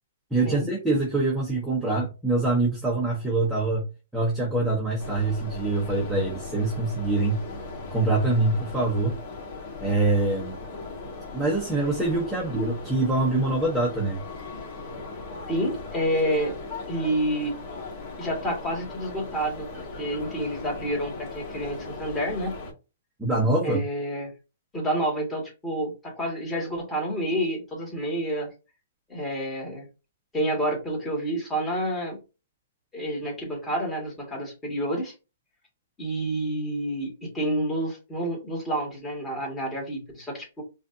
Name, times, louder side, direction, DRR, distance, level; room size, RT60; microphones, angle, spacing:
voice 1, 0.3-3.8 4.1-7.4 7.9-9.2 9.8-10.6 11.3-14.2 23.2-23.8, right 2 dB, 5° right, -4 dB, 1.0 m, -24 dB
sound 1, 5.0-22.7, left 3 dB, 35° left, 1.8 m, -38 dB
voice 2, 15.5-16.5 16.9-17.5 18.2-22.6 23.6-24.3 24.7-28.5 29.1-29.9 30.3-32.2 32.9-35.1 36.0-40.6, right 1 dB, 15° left, -2 dB, 2.0 m, -29 dB
5.0 x 2.5 x 2.7 m, 0.29 s
hypercardioid pair, 145°, 0 cm